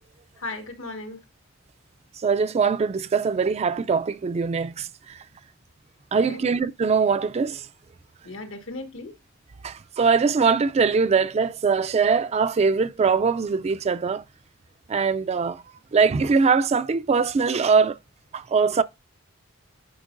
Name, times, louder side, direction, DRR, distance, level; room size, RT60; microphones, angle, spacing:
voice 1, 0.4-1.2 6.2-6.4 8.2-9.1, left 2 dB, 85° left, 1.4 m, -36 dB
voice 2, 2.2-5.2 6.1-7.6 9.6-14.2 14.9-15.6 15.9-18.0 18.3-18.8, right 5 dB, 35° right, 0.3 m, -22 dB
10.0 x 5.2 x 2.5 m
head